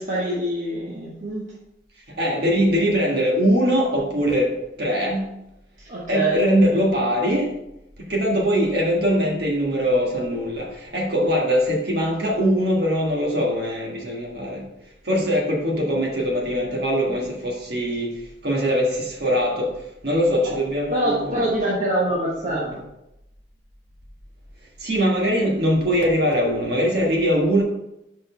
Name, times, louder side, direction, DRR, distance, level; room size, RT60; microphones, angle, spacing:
voice 1, 0.0-1.4 5.8-6.4 20.9-22.7, right 1 dB, 45° right, -5 dB, 1.1 m, -24 dB
voice 2, 2.2-4.5 4.8-5.3 6.1-7.5 8.1-14.6 15.0-18.1 18.4-19.7 20.0-21.5 22.4-22.8 24.8-27.6, equal, 60° right, -1 dB, 1.6 m, -22 dB
5.1 x 4.2 x 5.6 m, 0.88 s
head